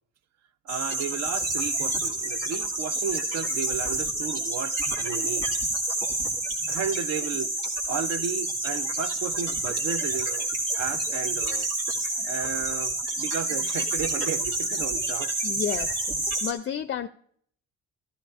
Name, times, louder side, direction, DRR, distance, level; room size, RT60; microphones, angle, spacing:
voice 1, 0.7-5.5 6.7-7.5 7.9-10.5 10.8-11.7 12.2-15.3, right 7 dB, 60° right, 0.6 m, -33 dB
sound 1, 0.7-16.5, right 2 dB, 80° right, 2.1 m, -28 dB
voice 2, 15.4-17.1, left 9 dB, 40° left, 0.4 m, -32 dB
14.5 x 13.5 x 2.4 m
cardioid pair, 90°, 30 cm